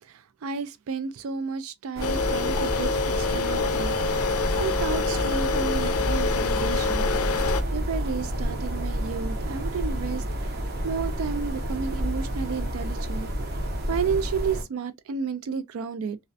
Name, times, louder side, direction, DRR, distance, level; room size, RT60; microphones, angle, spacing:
voice 1, 0.1-2.9 3.2-4.0 4.6-7.1 7.7-10.2 10.8-13.3 13.9-16.2, right 6 dB, 75° right, 0.4 m, -32 dB
sound 1, 2.0-7.6, left 4 dB, 85° left, 0.4 m, -26 dB
sound 2, 2.0-14.6, equal, 50° right, 0.7 m, -29 dB
2.4 x 2.1 x 2.5 m
head